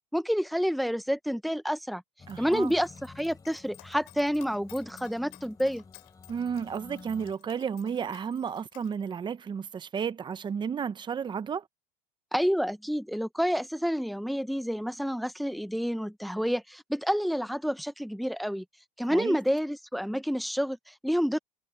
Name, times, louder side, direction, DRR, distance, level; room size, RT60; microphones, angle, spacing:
voice 1, 0.1-2.0 2.4-5.8 12.3-18.6 19.0-21.4, equal, ahead, 0.9 m, -29 dB
sound 1, 2.2-7.3, left 4 dB, 20° left, 4.0 m, -51 dB
Dog, 2.3-9.0, left 30 dB, 70° left, 4.2 m, -55 dB
voice 2, 2.3-2.7 6.3-11.6 19.1-19.4, right 7 dB, 25° right, 1.0 m, -32 dB
supercardioid pair, 110°, 19 cm